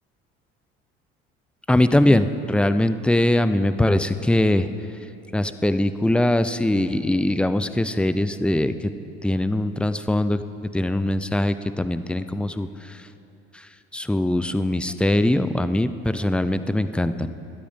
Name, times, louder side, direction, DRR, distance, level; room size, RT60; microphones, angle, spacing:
voice 1, 1.7-4.7 5.3-8.9 9.2-10.4 10.7-13.0 13.9-17.3, left 1 dB, 5° left, 12 dB, 0.6 m, -21 dB
23.0 x 8.6 x 5.2 m, 2.9 s
hypercardioid pair, 70°, 31 cm